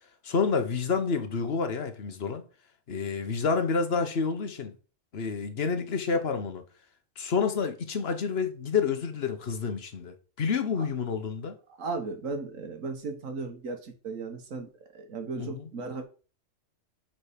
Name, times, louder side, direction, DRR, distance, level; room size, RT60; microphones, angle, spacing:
voice 1, 0.2-2.4 2.9-4.7 5.1-6.6 7.2-11.5 15.4-15.7, left 5 dB, 55° left, 1.2 m, -29 dB
voice 2, 11.7-16.0, right 3 dB, 85° right, 1.6 m, -36 dB
6.8 x 4.4 x 5.0 m
omnidirectional pair, 1.3 m